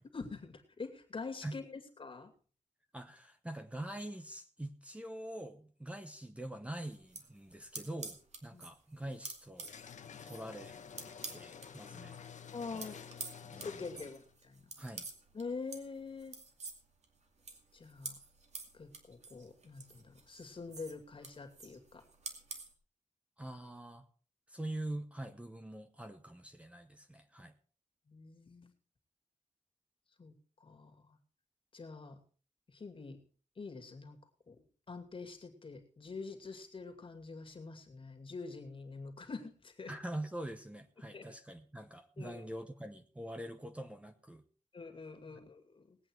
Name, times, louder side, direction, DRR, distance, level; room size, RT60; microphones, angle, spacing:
voice 1, 0.1-2.3 8.5-8.6 12.5-13.0 13.6-14.6 15.3-16.4 17.7-18.2 18.7-22.0 28.1-28.7 30.2-30.3 30.6-31.2 31.7-32.2 32.7-33.2 33.6-34.2 34.5-34.6 34.9-39.9 41.1-41.3 42.2-42.4 44.7-46.0, left 4 dB, 45° left, 4 dB, 2.4 m, -45 dB
voice 2, 2.9-9.7 10.2-10.7 11.3-12.2 12.7-12.9 13.4-13.8 14.8-15.1 23.4-24.0 24.5-27.5 39.9-44.4, right 1 dB, 10° right, 7 dB, 1.0 m, -44 dB
sound 1, 6.9-11.7 12.0-22.7, right 4 dB, 65° right, 2.4 m, -49 dB
sound 2, 9.6-14.4, left 7 dB, 80° left, 1.0 m, -50 dB
20.0 x 8.7 x 4.6 m, 0.39 s
wide cardioid pair, 145°, 12 cm